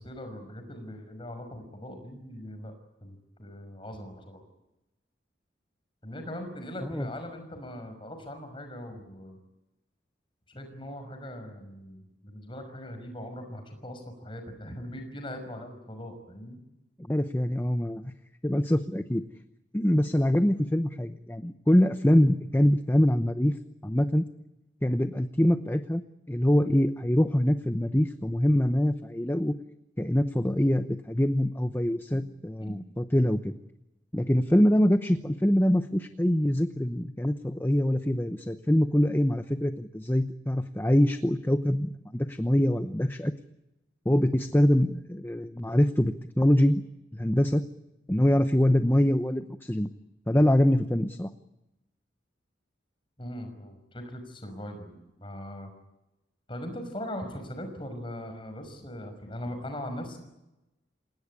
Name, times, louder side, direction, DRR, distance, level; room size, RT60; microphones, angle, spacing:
voice 1, 0.0-2.7 3.0-4.4 6.0-9.4 10.5-16.6 32.6-32.7 53.2-55.7 56.5-60.2, left 1 dB, 30° left, 6 dB, 5.7 m, -40 dB
voice 2, 17.1-18.1 18.4-19.2 19.7-23.6 23.8-24.2 24.8-26.0 26.3-29.5 30.0-33.5 34.1-43.3 44.0-46.8 47.1-47.6 48.1-49.9 50.3-51.3, left 1 dB, 10° left, 9 dB, 0.8 m, -24 dB
28.0 x 17.5 x 9.8 m, 0.93 s
head